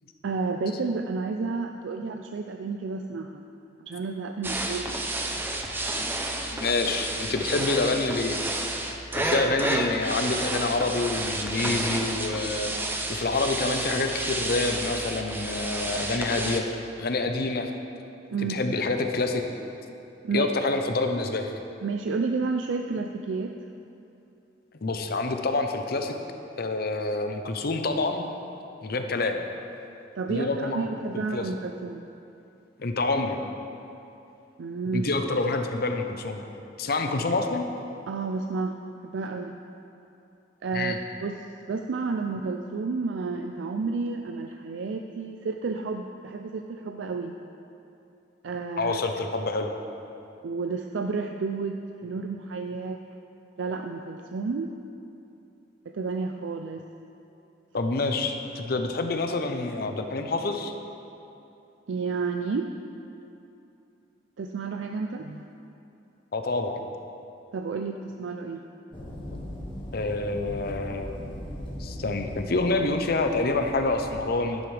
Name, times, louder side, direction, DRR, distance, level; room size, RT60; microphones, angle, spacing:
voice 1, 0.2-3.4 3.8-5.3 18.3-18.6 20.2-20.5 21.8-23.5 30.1-32.0 34.6-35.1 38.1-38.8 39.0-39.5 40.6-41.0 41.2-47.3 48.4-49.0 50.4-51.8 52.0-53.0 53.6-54.7 55.9-56.8 61.9-62.7 64.4-65.4 67.5-68.6, right 4 dB, 85° right, 4 dB, 0.4 m, -31 dB
sound 1, 4.4-16.6, right 2 dB, 10° right, 0.6 m, -31 dB
voice 2, 6.4-8.4 9.1-12.7 13.1-16.7 17.0-17.7 18.5-19.4 20.3-21.5 24.8-26.1 26.6-28.3 28.8-29.4 30.3-30.9 31.1-31.5 32.8-33.4 34.9-36.4 36.8-37.6 40.7-41.0 48.8-49.7 57.7-60.7 66.3-66.8 69.9-71.1 71.8-74.6, left 3 dB, 55° left, 5 dB, 0.7 m, -27 dB
sound 2, 68.9-74.2, left 1 dB, 25° left, 1.6 m, -39 dB
11.0 x 10.5 x 3.4 m, 2.8 s
head